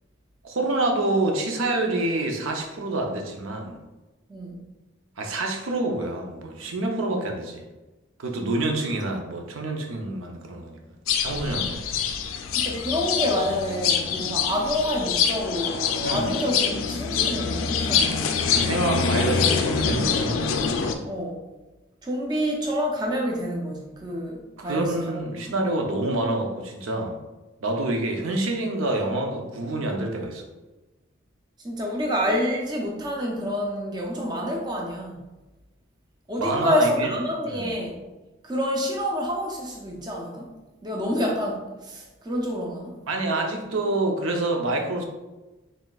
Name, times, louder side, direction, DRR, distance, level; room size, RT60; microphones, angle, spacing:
voice 1, 0.4-3.8 5.2-7.6 8.2-10.8 11.2-11.8 16.0-16.3 18.5-20.4 24.6-27.2 27.6-30.4 36.4-37.1 37.5-37.7 43.1-45.0, right 2 dB, 85° right, 2 dB, 0.6 m, -27 dB
voice 2, 4.3-4.7 12.5-18.3 19.0-19.3 21.1-21.4 22.0-25.4 31.6-35.3 36.3-38.0 38.4-40.5 40.8-43.0, equal, 20° right, 0 dB, 0.4 m, -28 dB
sound 1, 11.1-20.9, left 6 dB, 80° left, 0.4 m, -25 dB
4.1 x 3.7 x 2.3 m, 1.1 s
head